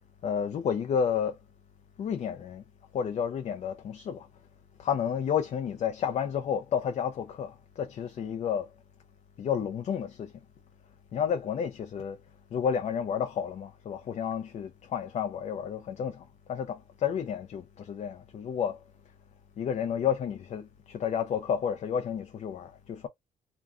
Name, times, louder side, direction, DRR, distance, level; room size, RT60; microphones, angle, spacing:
voice 1, 0.2-1.4 2.0-2.6 2.9-4.3 4.8-8.7 9.4-10.3 11.1-12.2 12.5-16.2 16.5-18.8 19.6-23.1, left 8 dB, 50° left, 0.5 m, -31 dB
2.3 x 2.2 x 3.5 m
cardioid pair, 90°, 14 cm